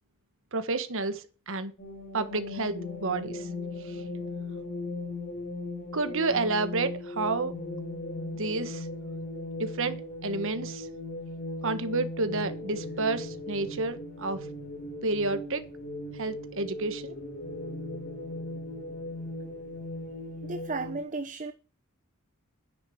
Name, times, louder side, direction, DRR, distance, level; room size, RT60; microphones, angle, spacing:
voice 1, 0.5-1.2 1.5-1.7 2.1-2.7 3.0-3.4 5.9-6.9 7.2-7.5 8.4-8.8 9.6-10.0 10.2-10.8 11.6-14.4 15.0-15.6 16.2-17.1, right 3 dB, 60° right, 1.4 m, -29 dB
sound 1, 1.8-21.0, left 2 dB, 40° left, 3.3 m, -38 dB
voice 2, 20.4-21.5, right 3 dB, 35° right, 0.8 m, -34 dB
10.0 x 7.8 x 8.7 m
head